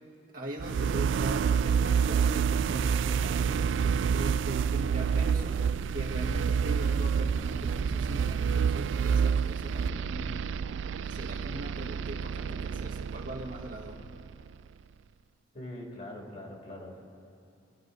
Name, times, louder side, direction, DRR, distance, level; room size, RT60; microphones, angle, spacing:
voice 1, 0.3-3.8 4.1-5.6 5.9-10.4 11.0-14.0, equal, 50° right, -2 dB, 1.6 m, -40 dB
sound 1, 0.6-14.5, right 6 dB, 90° right, 0.3 m, -28 dB
voice 2, 15.5-17.0, left 1 dB, 45° left, -2 dB, 2.9 m, -42 dB
25.0 x 11.5 x 4.1 m, 2.7 s
head